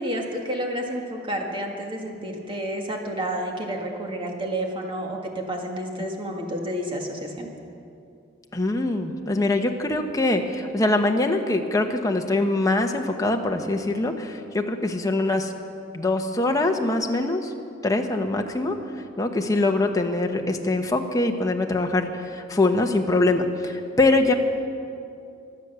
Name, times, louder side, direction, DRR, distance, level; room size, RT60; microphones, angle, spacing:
voice 1, 0.0-7.5, right 1 dB, 25° right, 1 dB, 1.9 m, -30 dB
voice 2, 8.5-15.5 15.9-17.5 17.8-18.8 19.2-24.3, left 2 dB, 15° left, 3 dB, 1.0 m, -23 dB
23.5 x 8.1 x 6.9 m, 2.5 s
head